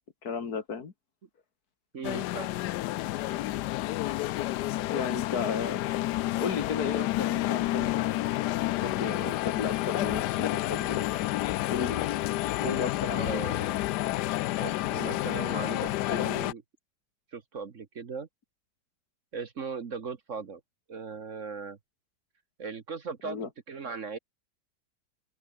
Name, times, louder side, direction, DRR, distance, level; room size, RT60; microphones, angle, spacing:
voice 1, 0.2-0.9 4.9-5.8 6.4-8.4 8.8-11.3 11.7-12.2 12.6-13.4 23.2-23.5, left 5 dB, 60° left, 2.4 m, -34 dB
voice 2, 1.9-2.5 12.6-12.8 13.1-13.9 14.6-16.6 17.3-18.3 19.3-20.6 20.9-21.8 22.6-23.4 23.7-24.2, right 5 dB, 45° right, 1.5 m, -38 dB
sound 1, 2.0-16.5, left 16 dB, 75° left, 1.1 m, -30 dB
open air
omnidirectional pair, 1.9 m